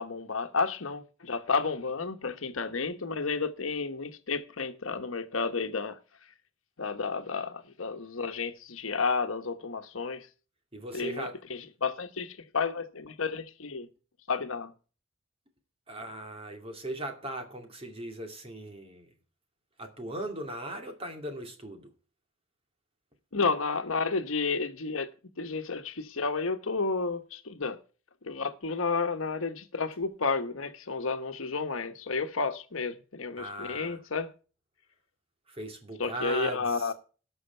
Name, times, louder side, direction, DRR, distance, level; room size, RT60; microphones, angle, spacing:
voice 1, 0.0-6.0 6.8-10.3 10.9-13.9 14.3-14.7 23.3-25.1 25.4-27.8 28.2-34.3 36.0-36.9, left 4 dB, 75° left, 1.2 m, -31 dB
voice 2, 10.7-11.4 15.9-19.1 19.8-21.9 33.4-34.0 35.5-36.9, right 1 dB, 25° right, 2.3 m, -38 dB
18.0 x 6.4 x 4.5 m
head